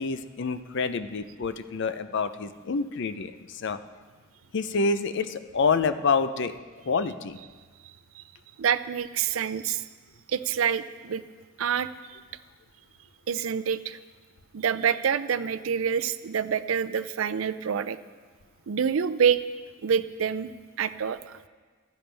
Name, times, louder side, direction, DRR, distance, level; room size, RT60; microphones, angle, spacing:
voice 1, 0.0-3.8 4.5-6.5 6.9-7.4, left 4 dB, 60° left, 12 dB, 0.5 m, -27 dB
voice 2, 8.6-9.8 10.3-11.2 11.6-12.2 13.3-14.0 14.5-18.0 18.7-19.4 19.8-20.5 20.8-21.4, right 7 dB, 75° right, 13 dB, 0.5 m, -27 dB
15.5 x 12.0 x 3.4 m, 1.4 s
head